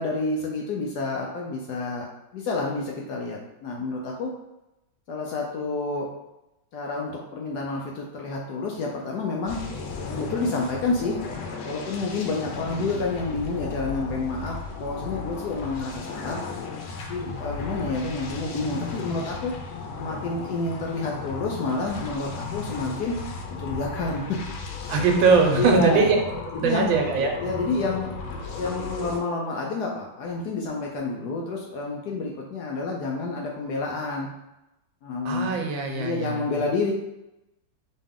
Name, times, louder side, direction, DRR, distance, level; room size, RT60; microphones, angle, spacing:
voice 1, 0.0-2.1 2.3-4.3 5.1-6.1 6.7-9.6 10.1-11.2 11.6-16.4 17.1-19.5 20.0-23.2 23.6-24.4 25.6-26.0 26.5-26.9 27.4-34.3 35.0-35.6 35.9-36.9, left 3 dB, 70° left, -1 dB, 1.0 m, -29 dB
sound 1, 9.5-29.2, left 4 dB, 90° left, 1.5 m, -35 dB
voice 2, 24.9-26.2 26.6-27.3 35.2-36.6, right 4 dB, 80° right, 2 dB, 1.4 m, -21 dB
4.2 x 3.2 x 3.6 m, 0.92 s
omnidirectional pair, 2.1 m